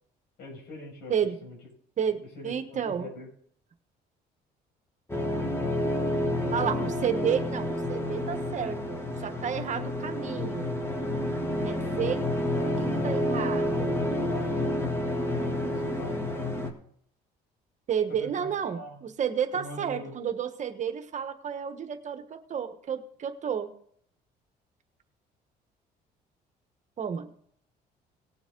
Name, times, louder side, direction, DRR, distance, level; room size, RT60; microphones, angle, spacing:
voice 1, 0.4-1.1 1.4-1.6 2.3-3.3 14.3-14.5 15.3-16.2 18.2-19.0 19.5-20.2, left 1 dB, 75° left, 0 dB, 6.2 m, -42 dB
voice 2, 2.0-3.1 6.5-10.8 11.6-12.2 12.6-14.0 17.9-23.7 27.0-27.3, right 8 dB, 45° right, 8 dB, 1.3 m, -31 dB
sound 1, 5.1-16.7, left 1 dB, 15° left, 2.0 m, -29 dB
19.0 x 7.1 x 3.9 m, 0.64 s
cardioid pair, 110°, 17 cm